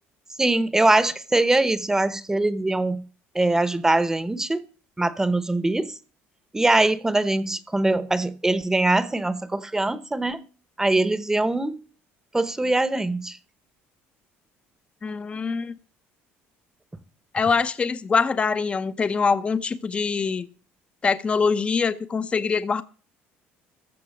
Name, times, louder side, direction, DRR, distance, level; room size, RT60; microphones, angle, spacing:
voice 1, 0.4-3.0 3.3-4.6 5.0-5.9 6.5-10.4 10.8-11.8 12.3-13.4, right 2 dB, 10° right, 0.9 m, -22 dB
voice 2, 15.0-15.7 17.3-20.5 21.0-22.8, left 5 dB, 25° left, 0.7 m, -24 dB
15.0 x 5.9 x 7.2 m
cardioid pair, 120°, 5 cm